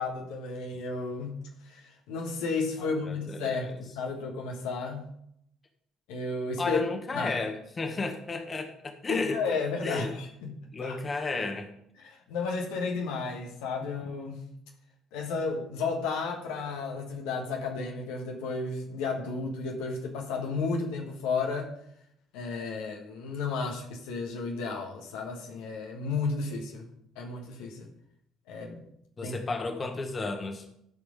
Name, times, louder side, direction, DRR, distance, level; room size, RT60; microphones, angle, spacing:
voice 1, 0.0-5.1 6.1-7.3 9.1-11.0 12.0-14.4 15.1-21.7 22.3-26.8 27.1-27.9 28.5-28.8 29.2-29.4, left 4 dB, 70° left, 1 dB, 1.4 m, -33 dB
voice 2, 2.8-3.6 6.6-9.4 9.8-10.1 10.7-11.7 29.2-30.6, left 3 dB, 30° left, 5 dB, 1.5 m, -33 dB
12.5 x 5.0 x 5.0 m, 0.74 s
hypercardioid pair, 55°, 0 cm